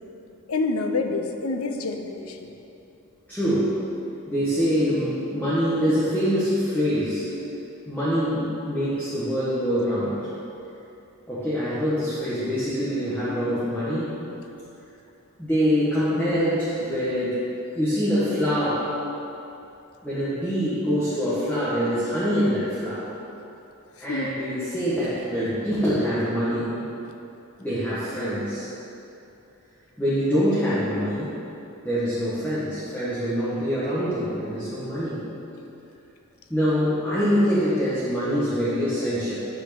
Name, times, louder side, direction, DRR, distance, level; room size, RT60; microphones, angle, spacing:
voice 1, 0.5-2.5 24.1-24.3, left 3 dB, 80° left, 5 dB, 0.7 m, -27 dB
voice 2, 3.3-3.8 4.3-7.3 7.8-10.3 11.3-14.1 15.4-17.4 17.7-18.9 20.0-23.1 24.0-26.8 27.6-28.7 30.0-31.4 31.8-35.2 36.5-39.4, equal, 5° left, -12 dB, 1.6 m, -24 dB
9.3 x 4.9 x 7.0 m, 2.8 s
head